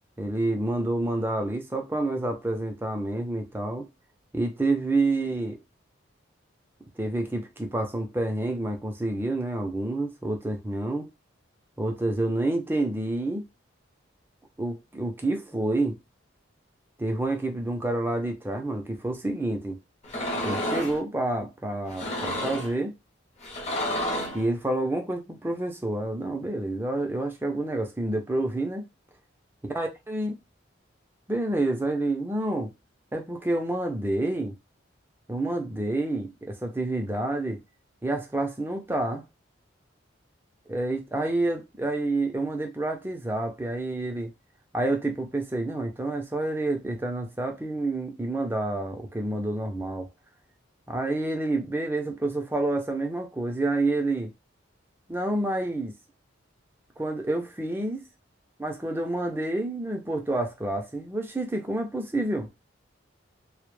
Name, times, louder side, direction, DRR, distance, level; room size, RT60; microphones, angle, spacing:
voice 1, 0.2-3.9 4.3-5.6 7.0-11.1 11.8-13.4 14.6-16.0 17.0-19.8 20.4-22.9 24.3-28.8 29.7-30.4 31.3-32.7 33.1-34.5 35.3-37.6 38.0-39.2 40.7-44.3 44.7-50.1 50.9-54.3 55.1-55.9 57.0-58.0 58.6-62.5, right 2 dB, 10° right, 0.4 m, -28 dB
sound 1, 20.0-21.0 21.9-22.8 23.4-24.4, left 1 dB, 35° left, 0.6 m, -30 dB
2.0 x 2.0 x 3.0 m
head